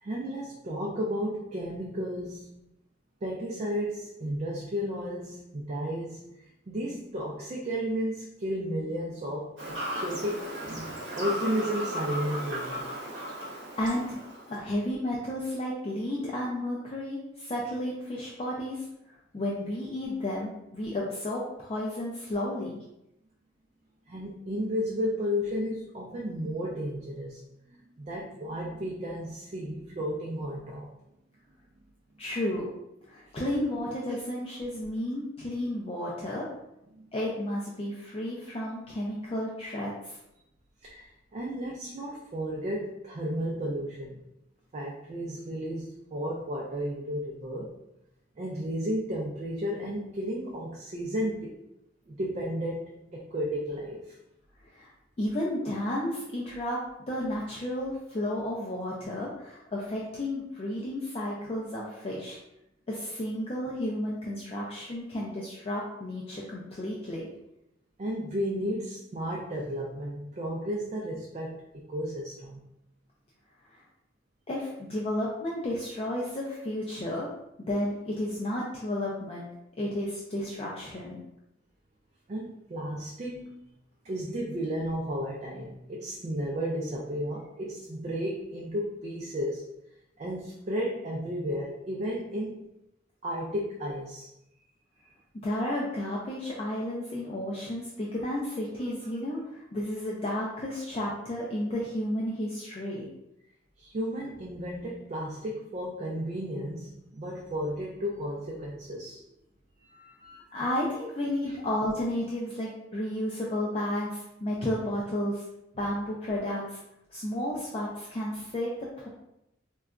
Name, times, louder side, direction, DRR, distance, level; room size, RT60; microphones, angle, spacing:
voice 1, 0.0-2.5 3.2-6.2 6.7-12.8 24.1-27.4 27.7-30.9 36.9-37.1 40.8-44.2 44.7-47.7 48.4-51.6 52.1-54.2 68.0-71.6 71.9-72.6 82.3-83.6 84.0-89.6 90.2-92.6 93.2-94.3 103.8-109.2 109.8-110.6 111.4-111.5, equal, 35° right, -2 dB, 0.4 m, -33 dB
Fowl / Bird vocalization bird call bird song, 9.6-14.6, equal, 70° right, 0.9 m, -36 dB
voice 2, 13.4-18.9 19.3-22.8 32.2-32.7 33.1-36.5 37.1-40.2 54.7-54.9 55.2-62.4 62.9-67.3 73.7-73.8 74.5-77.3 77.7-79.5 79.8-81.2 95.3-103.1 110.5-115.4 115.8-116.8 117.1-119.1, left 1 dB, 30° left, -4 dB, 0.4 m, -32 dB
3.8 x 2.2 x 2.4 m, 0.86 s
head